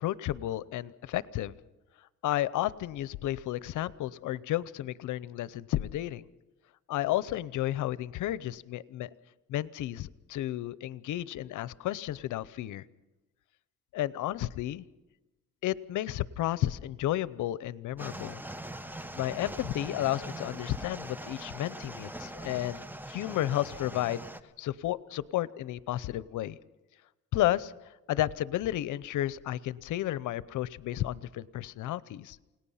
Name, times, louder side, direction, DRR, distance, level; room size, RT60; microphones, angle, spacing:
voice 1, 0.0-1.5 2.2-6.3 6.9-9.1 9.5-12.8 13.9-14.8 15.6-18.4 19.2-24.2 24.6-26.6 27.3-32.4, left 14 dB, 80° left, 18 dB, 0.8 m, -32 dB
sound 1, 18.0-24.4, right 1 dB, 5° right, 1.2 m, -42 dB
29.0 x 18.5 x 5.7 m, 1.0 s
cardioid pair, 90°, 30 cm